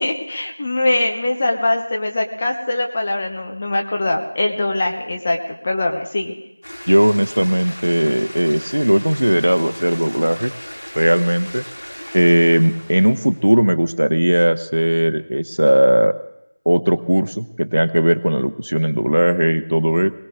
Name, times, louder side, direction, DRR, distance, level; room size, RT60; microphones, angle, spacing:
voice 1, 0.0-5.4 5.6-6.3, left 2 dB, 15° left, 2 dB, 0.9 m, -22 dB
sound 1, 6.6-13.5, equal, 60° left, 5.3 m, -37 dB
voice 2, 6.9-10.5 11.0-11.6 12.1-16.1 16.7-20.1, right 1 dB, 75° right, 10 dB, 0.9 m, -17 dB
21.0 x 19.0 x 3.6 m, 0.86 s
figure-of-eight pair, 175°, 0 cm